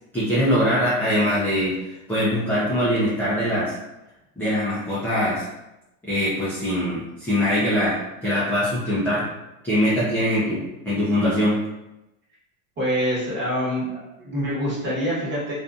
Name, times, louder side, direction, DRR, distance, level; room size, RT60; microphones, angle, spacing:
voice 1, 0.1-3.7 4.4-5.4 6.0-9.3 9.6-11.6, equal, 5° left, -10 dB, 0.4 m, -22 dB
voice 2, 12.8-15.5, equal, 25° right, -7 dB, 1.2 m, -25 dB
2.6 x 2.5 x 2.3 m, 0.95 s
supercardioid pair, 125°, 43 cm